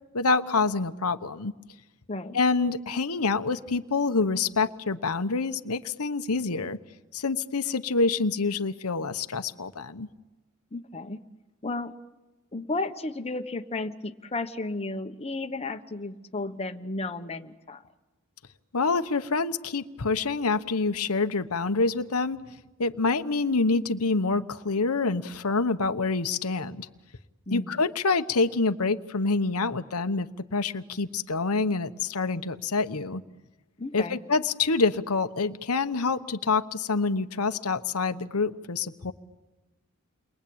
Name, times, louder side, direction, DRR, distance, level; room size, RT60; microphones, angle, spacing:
voice 1, 0.1-1.5 2.3-6.8 7.1-10.1 18.7-22.4 22.8-26.9 27.5-33.2 33.9-39.1, left 4 dB, 90° left, 9 dB, 1.1 m, -26 dB
voice 2, 10.7-11.2 11.6-11.9 12.5-17.8 27.5-27.8 33.8-34.2, left 2 dB, 30° left, 5 dB, 1.2 m, -33 dB
29.5 x 22.5 x 8.8 m, 1.1 s
head